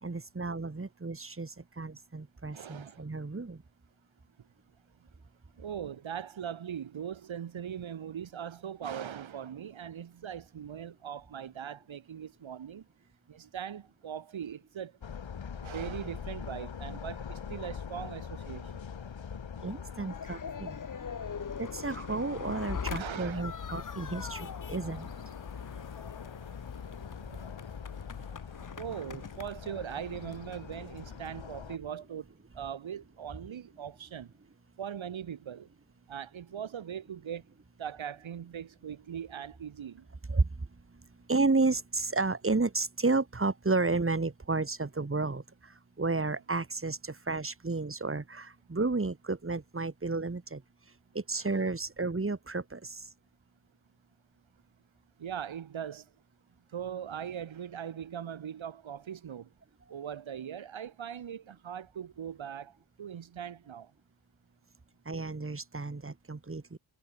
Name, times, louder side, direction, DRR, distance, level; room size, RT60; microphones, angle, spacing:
voice 1, 0.0-3.6 19.6-20.7 21.6-25.1 40.3-40.5 41.3-50.6 51.1-53.0 65.1-66.8, right 3 dB, 30° right, 2.9 m, -32 dB
voice 2, 2.5-3.0 5.6-12.8 13.3-14.9 15.6-18.7 22.9-23.5 28.8-32.3 32.5-34.3 34.8-35.7 36.1-37.4 37.8-40.0 55.2-56.1 56.7-59.5 59.9-63.9, right 8 dB, 90° right, 3.6 m, -40 dB
sound 1, 15.0-31.8, left 7 dB, 75° left, 6.3 m, -43 dB
sound 2, 20.1-31.4, left 6 dB, 45° left, 1.3 m, -43 dB
cardioid pair, 50°, 45 cm